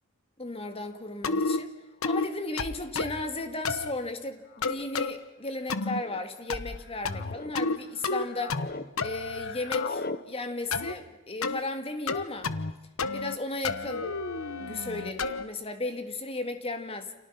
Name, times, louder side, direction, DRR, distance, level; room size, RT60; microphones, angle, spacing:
voice 1, 0.4-1.7 2.0-8.6 9.0-12.5 13.1-14.1 14.6-17.1, left 2 dB, 25° left, 2.0 m, -35 dB
sound 1, 1.2-1.6 2.0-2.3 2.6-3.2 3.6-3.9 4.6-5.1 5.7-6.0 6.5-6.8 7.0-7.8 8.0-8.7 9.0-9.9 10.7-10.9 11.4-11.6 12.1-12.7 13.0-13.4 13.6-15.4, left 3 dB, 80° left, 1.1 m, -30 dB
sound 2, 2.2-2.3 3.3-3.5 4.5-4.9 5.7-6.2 6.8-7.5 8.0-8.9 9.1-10.2, left 4 dB, 45° left, 0.9 m, -40 dB
29.5 x 28.0 x 5.8 m
head